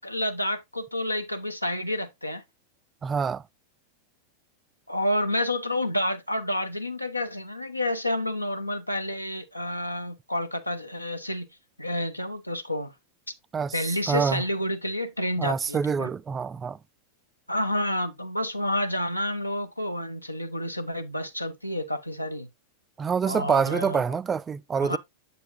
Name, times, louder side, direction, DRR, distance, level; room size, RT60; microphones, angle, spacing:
voice 1, 0.0-2.4 4.9-11.5 11.8-12.9 13.7-16.1 17.5-22.5 23.3-24.0 24.8-25.0, left 1 dB, 85° left, 0.7 m, -29 dB
voice 2, 3.0-3.4 13.5-13.7 14.1-14.4 15.4-16.8 23.0-25.0, right 6 dB, 20° right, 0.3 m, -26 dB
8.1 x 6.8 x 2.6 m
figure-of-eight pair, 90°, 0 cm